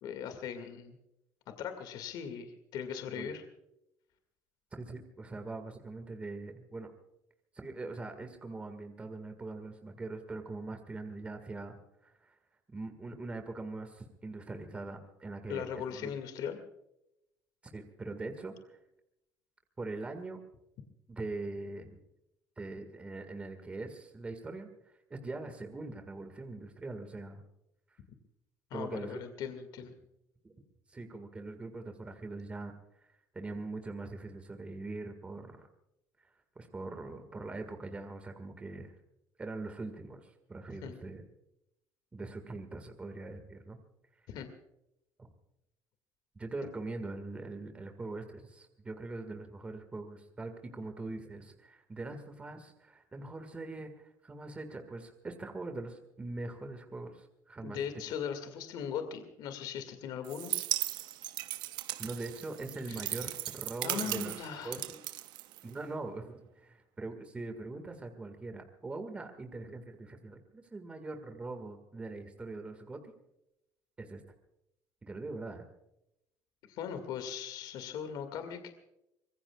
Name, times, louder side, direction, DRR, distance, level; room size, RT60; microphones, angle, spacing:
voice 1, 0.0-1.0 1.6-3.4 15.5-16.6 28.7-29.9 40.8-40.9 44.3-44.5 57.6-60.5 62.9-63.2 63.8-64.8 76.7-78.7, left 8 dB, 60° left, 7 dB, 2.1 m, -39 dB
voice 2, 4.8-6.9 7.5-11.8 12.0-12.3 12.7-16.1 17.7-18.8 19.8-20.4 21.1-22.0 22.6-27.4 27.9-28.0 28.7-29.2 30.4-30.5 30.9-33.1 33.3-35.7 36.2-39.0 39.4-41.2 42.1-43.8 44.2-44.3 46.3-57.8 62.0-65.0 65.6-73.1 74.0-74.2 75.0-75.7, right 3 dB, 15° right, 6 dB, 1.8 m, -42 dB
sound 1, 60.2-66.0, right 15 dB, 65° right, 0.8 m, -37 dB
24.5 x 22.0 x 2.4 m, 0.85 s
cardioid pair, 140°, 8 cm